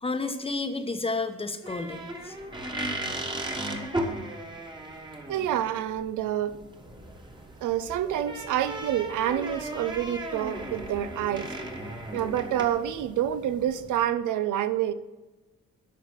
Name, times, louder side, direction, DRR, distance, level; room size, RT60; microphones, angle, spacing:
voice 1, 0.0-2.4, left 3 dB, 20° left, 7 dB, 0.9 m, -31 dB
sound 1, 1.6-14.0, right 1 dB, 15° right, 1.4 m, -36 dB
voice 2, 5.3-6.6 7.6-11.5 12.1-14.9, right 11 dB, 80° right, 12 dB, 0.6 m, -28 dB
11.5 x 4.1 x 6.3 m, 1.1 s
cardioid pair, 90°, 30 cm